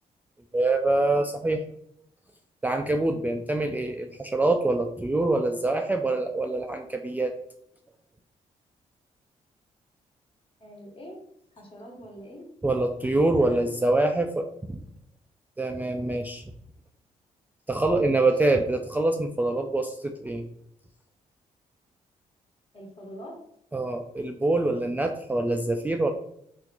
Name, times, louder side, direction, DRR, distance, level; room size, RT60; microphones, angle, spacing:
voice 1, 0.5-1.6 2.6-7.3 12.6-14.8 15.6-16.5 17.7-20.5 23.7-26.1, right 2 dB, 10° right, 4 dB, 0.3 m, -25 dB
voice 2, 10.6-11.2 11.5-12.5 13.3-14.0 22.7-23.4, equal, 35° left, -1 dB, 1.4 m, -44 dB
2.9 x 2.5 x 3.8 m, 0.72 s
hypercardioid pair, 50°, 16 cm